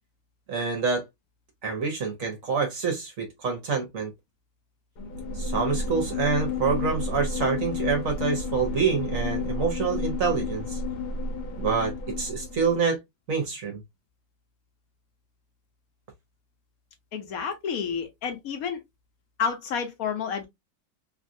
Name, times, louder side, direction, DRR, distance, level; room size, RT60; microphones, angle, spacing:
voice 1, 0.5-1.0 1.6-4.1 5.4-10.8 11.6-13.0 13.3-13.8, right 5 dB, 55° right, 1.0 m, -27 dB
sound 1, 5.0-12.8, left 3 dB, 80° left, 1.5 m, -31 dB
voice 2, 17.1-18.8 19.4-20.5, left 6 dB, 60° left, 1.1 m, -30 dB
3.3 x 2.4 x 2.6 m
omnidirectional pair, 2.1 m